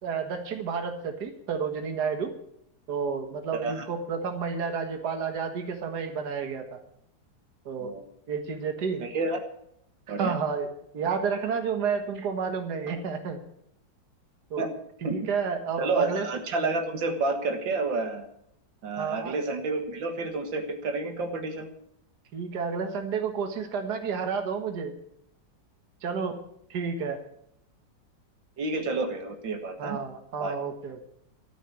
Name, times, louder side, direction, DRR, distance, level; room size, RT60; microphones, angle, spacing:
voice 1, 0.0-2.3 2.9-6.8 7.7-7.9 8.3-9.0 10.2-10.7 10.9-13.4 14.5-14.7 15.0-16.3 19.0-19.3 22.3-24.9 26.0-26.4 26.7-27.2 29.8-31.0, right 6 dB, 60° right, 5 dB, 2.0 m, -30 dB
voice 2, 3.5-3.8 7.8-8.1 9.0-9.4 10.1-10.3 14.6-14.7 15.0-15.2 15.8-18.3 18.8-21.7 28.6-30.0 30.4-30.5, right 3 dB, 85° right, 6 dB, 2.4 m, -29 dB
13.5 x 7.4 x 9.7 m, 0.74 s
omnidirectional pair, 2.0 m